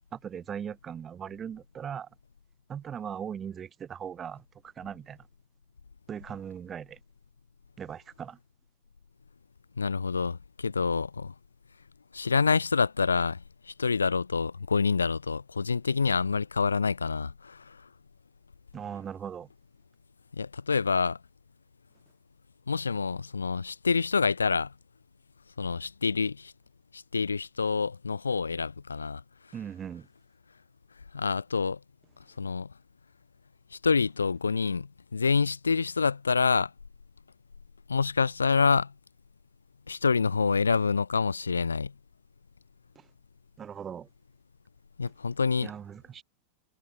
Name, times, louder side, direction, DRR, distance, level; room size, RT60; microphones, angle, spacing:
voice 1, 0.1-2.1 2.7-5.2 6.1-7.0 7.8-8.4 18.7-19.5 29.5-30.1 43.0-43.1 43.6-44.1 45.6-46.2, right 8 dB, 25° right, 3.8 m, -39 dB
voice 2, 9.8-11.3 12.1-17.8 20.3-21.2 22.7-24.7 25.6-26.5 26.9-29.2 31.1-31.8 32.4-32.7 33.7-36.7 37.9-38.9 39.9-41.9 45.0-45.7, left 5 dB, 75° left, 0.4 m, -27 dB
figure-of-eight pair, 90°, 0 cm